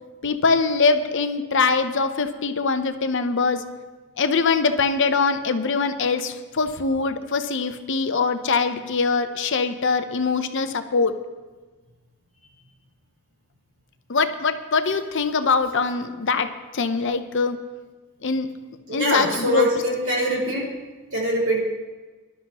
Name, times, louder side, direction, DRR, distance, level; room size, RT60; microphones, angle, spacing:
voice 1, 0.2-3.6 4.2-11.2 14.1-17.6 18.2-18.5 18.9-19.7, left 4 dB, 55° left, 9 dB, 0.7 m, -23 dB
voice 2, 18.9-20.7 21.1-21.6, equal, 80° right, -4 dB, 4.9 m, -23 dB
19.5 x 12.0 x 3.0 m, 1.3 s
head